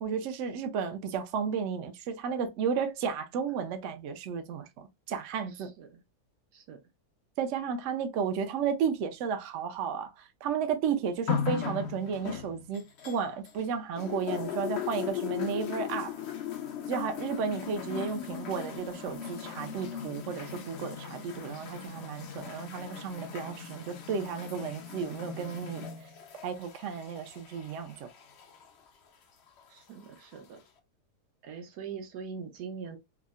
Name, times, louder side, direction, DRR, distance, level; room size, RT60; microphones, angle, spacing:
voice 1, 0.0-5.7 7.4-16.1 16.9-25.9 26.4-28.1, right 6 dB, 65° right, 0.8 m, -33 dB
voice 2, 5.5-6.0 6.5-6.8 29.7-30.6 31.4-33.0, right 6 dB, 85° right, 1.3 m, -42 dB
sound 1, 11.3-13.6 14.0-28.7 29.6-29.7, left 8 dB, 65° left, 0.6 m, -38 dB
3.6 x 2.1 x 2.3 m
omnidirectional pair, 1.7 m